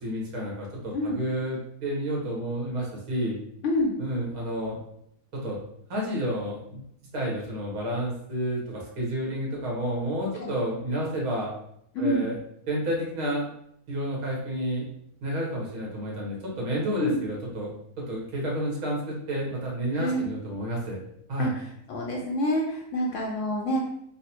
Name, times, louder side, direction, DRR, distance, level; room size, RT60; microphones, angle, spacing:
voice 1, 0.0-3.4 4.0-4.8 5.3-5.6 5.9-6.8 7.1-11.5 12.0-12.4 12.7-13.5 13.9-14.9 15.2-21.0 21.3-21.5, equal, 70° right, -3 dB, 1.4 m, -30 dB
voice 2, 3.6-3.9 10.3-10.5 11.9-12.3 17.0-17.2 19.9-20.3 21.4-21.5 21.9-23.9, equal, 70° left, -1 dB, 0.8 m, -27 dB
3.9 x 2.0 x 2.8 m, 0.73 s
omnidirectional pair, 1.6 m